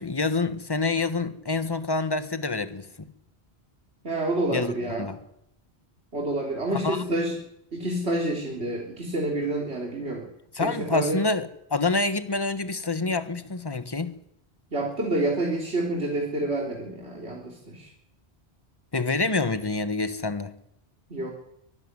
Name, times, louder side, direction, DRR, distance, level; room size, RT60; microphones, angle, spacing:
voice 1, 0.0-3.1 4.5-4.7 5.0-5.2 6.7-7.0 10.5-14.1 18.9-20.5, left 3 dB, 25° left, 1.4 m, -27 dB
voice 2, 4.0-5.1 6.1-7.4 7.7-10.3 10.6-11.2 14.7-17.9 21.1-21.3, right 1 dB, 85° right, 3.8 m, -28 dB
23.5 x 13.5 x 9.7 m
omnidirectional pair, 1.1 m